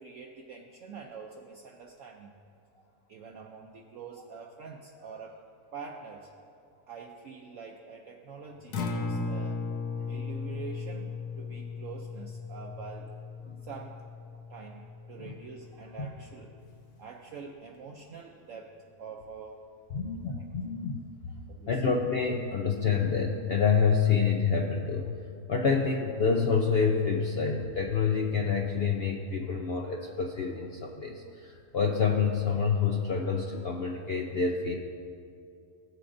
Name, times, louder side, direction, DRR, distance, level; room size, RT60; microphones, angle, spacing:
voice 1, 0.0-2.3 3.1-5.4 5.7-6.3 6.9-9.6 10.1-13.1 13.6-14.0 14.5-14.8 15.1-16.6 16.9-19.6 20.2-20.5 21.5-21.7, right 5 dB, 65° right, 1 dB, 0.9 m, -45 dB
Acoustic guitar, 8.6-16.8, left 4 dB, 80° left, 1.4 m, -37 dB
voice 2, 19.9-21.0 21.7-25.2 25.5-34.8, left 5 dB, 65° left, 1 dB, 0.6 m, -27 dB
16.0 x 7.5 x 2.6 m, 2.5 s
omnidirectional pair, 1.6 m